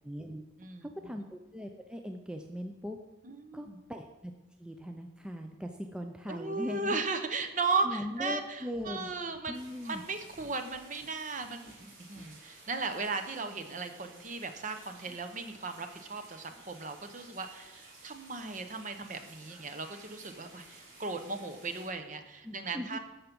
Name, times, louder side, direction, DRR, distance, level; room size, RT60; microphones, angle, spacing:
voice 1, 0.0-0.4 0.8-3.0 3.5-4.3 4.6-7.0 7.8-9.1 9.5-10.0 15.1-15.2 22.4-23.0, equal, 5° right, 4 dB, 0.5 m, -40 dB
voice 2, 0.6-1.2 3.2-3.8 6.3-9.6 9.8-23.0, right 4 dB, 40° right, 7 dB, 0.8 m, -36 dB
sound 1, 8.7-12.3, equal, 20° left, 0.8 m, -58 dB
sound 2, 9.5-21.9, right 2 dB, 75° right, 3.3 m, -55 dB
13.0 x 5.8 x 5.3 m, 1.0 s
head